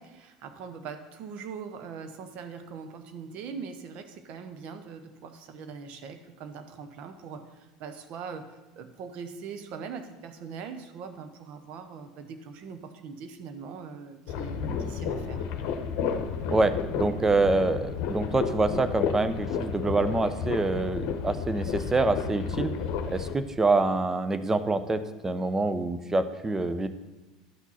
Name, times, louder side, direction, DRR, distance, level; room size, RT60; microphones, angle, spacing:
voice 1, 0.0-15.4, right 6 dB, 55° right, 8 dB, 0.9 m, -41 dB
sound 1, 14.3-23.3, left 6 dB, 55° left, 0.9 m, -32 dB
voice 2, 16.5-22.7 23.1-26.9, right 3 dB, 15° right, 11 dB, 0.7 m, -26 dB
11.0 x 6.0 x 4.2 m, 1.1 s
hypercardioid pair, 80°, 3 cm